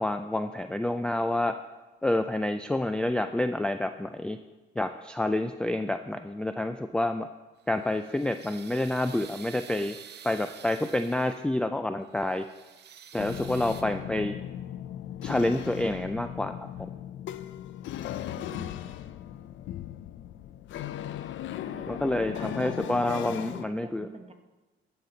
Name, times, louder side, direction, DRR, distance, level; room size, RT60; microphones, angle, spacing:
voice 1, 0.0-1.6 2.0-4.4 4.8-7.3 7.7-10.0 10.2-12.5 13.1-14.4 15.2-16.9 21.9-24.1, left 1 dB, 5° left, 8 dB, 0.3 m, -28 dB
sound 1, 7.6-11.6 12.0-13.8, right 8 dB, 60° right, 0.8 m, -49 dB
sound 2, 13.2-23.7, left 11 dB, 70° left, 0.5 m, -37 dB
voice 2, 18.4-18.7 21.7-24.3, right 3 dB, 30° right, 5 dB, 1.1 m, -47 dB
14.0 x 5.9 x 3.9 m, 1.2 s
cardioid pair, 90°, 20 cm